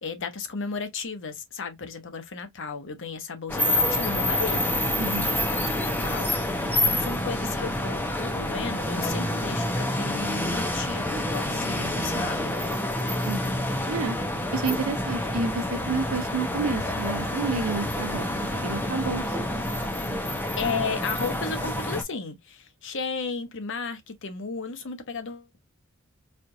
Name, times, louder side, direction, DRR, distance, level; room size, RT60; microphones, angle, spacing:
voice 1, 0.0-12.5 20.6-25.6, left 4 dB, 65° left, 0.8 m, -34 dB
sound 1, 3.5-22.0, left 1 dB, 10° left, 0.6 m, -28 dB
voice 2, 5.0-5.3 13.2-14.2 14.5-19.5 20.1-20.2, right 4 dB, 85° right, 0.7 m, -30 dB
4.3 x 2.4 x 2.7 m
head